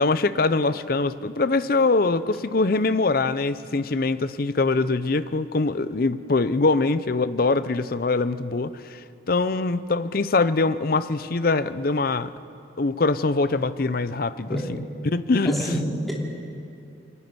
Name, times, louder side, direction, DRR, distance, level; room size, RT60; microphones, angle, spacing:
voice 1, 0.0-9.0 9.3-12.3 12.8-14.6 15.0-15.7, left 3 dB, 50° left, 14 dB, 0.6 m, -23 dB
voice 2, 15.4-16.1, equal, ahead, -3 dB, 3.1 m, -27 dB
24.0 x 11.5 x 9.6 m, 2.6 s
head